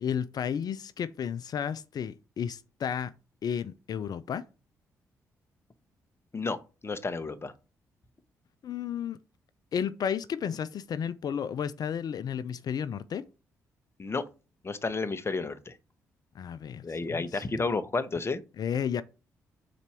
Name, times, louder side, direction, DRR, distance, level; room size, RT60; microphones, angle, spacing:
voice 1, 0.0-3.1 3.4-4.4 8.6-9.2 9.7-13.2 16.3-17.4 18.6-19.0, left 8 dB, 55° left, 0.5 m, -32 dB
voice 2, 6.3-7.5 14.0-14.2 14.6-15.8 16.8-18.4, left 3 dB, 30° left, 1.0 m, -31 dB
5.2 x 4.2 x 6.0 m
hypercardioid pair, 45°, 8 cm